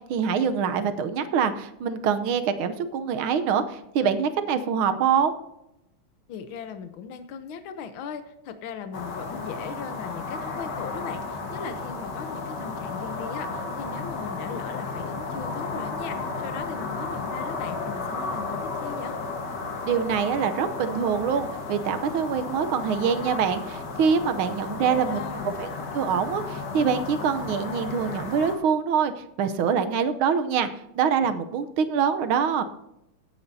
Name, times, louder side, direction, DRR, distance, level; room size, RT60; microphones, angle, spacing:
voice 1, 0.0-5.3 19.8-30.7 30.9-32.6, right 7 dB, 80° right, 10 dB, 1.7 m, -25 dB
voice 2, 6.3-19.2 24.6-25.5, left 7 dB, 75° left, 9 dB, 1.7 m, -38 dB
sound 1, 8.9-28.6, left 3 dB, 55° left, 2.1 m, -33 dB
17.0 x 9.4 x 2.7 m, 0.87 s
omnidirectional pair, 2.3 m